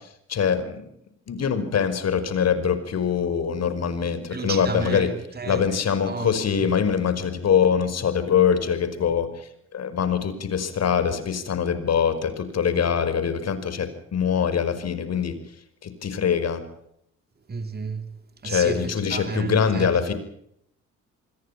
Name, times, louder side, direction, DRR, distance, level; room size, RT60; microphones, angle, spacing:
voice 1, 0.3-0.9 1.3-5.1 5.5-15.3 15.8-16.6 18.4-20.1, left 7 dB, 55° left, 5.3 m, -23 dB
voice 2, 4.3-5.8 6.0-6.7 17.5-20.1, right 5 dB, 30° right, 3.0 m, -32 dB
29.5 x 21.0 x 5.8 m
cardioid pair, 90°, 30 cm